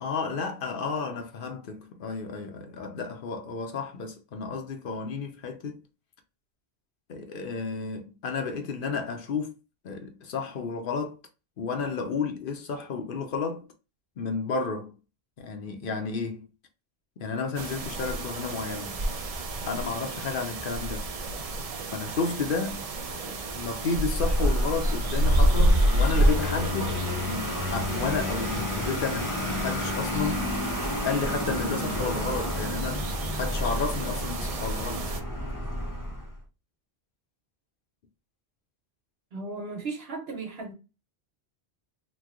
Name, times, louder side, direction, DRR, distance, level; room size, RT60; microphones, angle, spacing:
voice 1, 0.0-5.8 7.1-9.6 9.8-11.2 11.6-13.7 14.2-14.9 15.4-16.4 17.2-19.1 19.6-21.1 21.9-30.5 30.8-33.1 33.3-35.1, left 4 dB, 60° left, 0.7 m, -32 dB
sound 1, 17.5-35.2, right 1 dB, 50° right, 0.4 m, -29 dB
Vehicle, 24.1-36.4, left 1 dB, 25° left, 0.4 m, -31 dB
voice 2, 39.3-40.7, right 3 dB, 65° right, 1.2 m, -36 dB
2.9 x 2.2 x 3.6 m
omnidirectional pair, 1.1 m